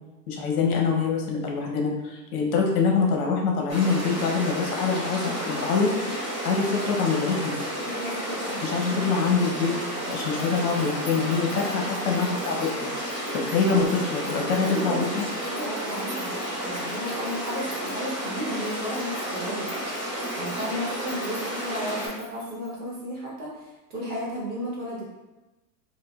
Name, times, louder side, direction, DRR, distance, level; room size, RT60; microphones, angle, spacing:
voice 1, 0.3-7.6 8.6-9.8 10.1-12.9 13.3-15.3, left 5 dB, 65° left, 0 dB, 0.8 m, -25 dB
sound 1, 3.7-22.1, equal, 10° right, 0.6 m, -32 dB
voice 2, 7.8-8.6 13.6-13.8 14.6-15.1 15.5-19.7 20.4-25.1, equal, 45° right, -5 dB, 1.0 m, -34 dB
sound 2, 10.1-23.0, equal, 5° left, 1.4 m, -49 dB
4.8 x 2.2 x 2.3 m, 1.1 s
supercardioid pair, 180°, 48 cm